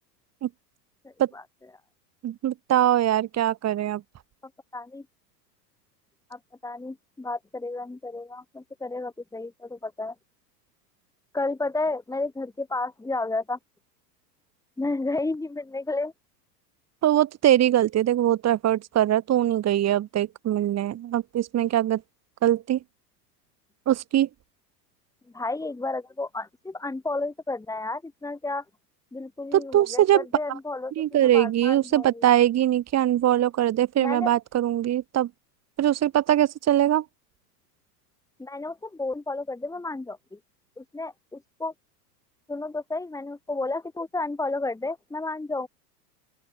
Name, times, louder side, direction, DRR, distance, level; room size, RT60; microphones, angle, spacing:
voice 1, 1.0-1.4 4.7-5.1 6.3-10.2 11.3-13.6 14.8-16.1 25.3-28.6 29.1-32.3 34.0-34.3 38.4-40.4 40.8-41.7 42.5-45.7, left 2 dB, 5° left, 2.1 m, -32 dB
voice 2, 2.2-4.0 17.0-22.0 22.4-22.8 23.9-24.3 29.5-30.3 31.0-35.3 35.8-37.0, right 12 dB, 30° right, 1.9 m, -22 dB
open air
hypercardioid pair, 105°, 49 cm